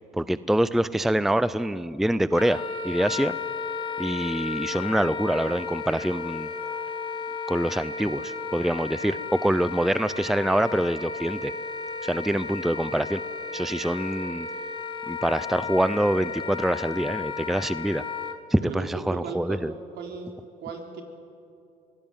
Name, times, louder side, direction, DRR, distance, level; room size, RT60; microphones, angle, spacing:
voice 1, 0.1-3.3 4.0-6.5 7.5-11.5 12.0-13.2 13.5-14.5 15.1-18.0 18.5-19.7, right 1 dB, ahead, 16 dB, 0.5 m, -25 dB
Wind instrument woodwind instrument, 2.3-18.4, left 5 dB, 30° left, 2.2 m, -34 dB
voice 2, 18.6-19.6 20.0-20.3 20.6-21.0, right 6 dB, 70° right, 3 dB, 3.8 m, -36 dB
23.0 x 16.5 x 9.1 m, 2.6 s
supercardioid pair, 75°, 18 cm